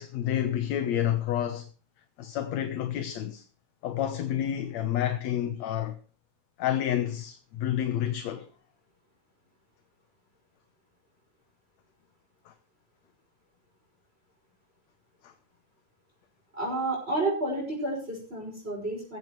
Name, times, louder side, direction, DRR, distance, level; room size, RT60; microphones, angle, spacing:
voice 1, 0.0-1.7 2.2-3.5 3.8-6.0 6.6-8.5 12.5-12.6 15.2-15.3, left 11 dB, 65° left, 2.1 m, -29 dB
voice 2, 16.5-19.2, right 2 dB, 15° right, 6.0 m, -30 dB
15.5 x 15.0 x 3.2 m
omnidirectional pair, 3.7 m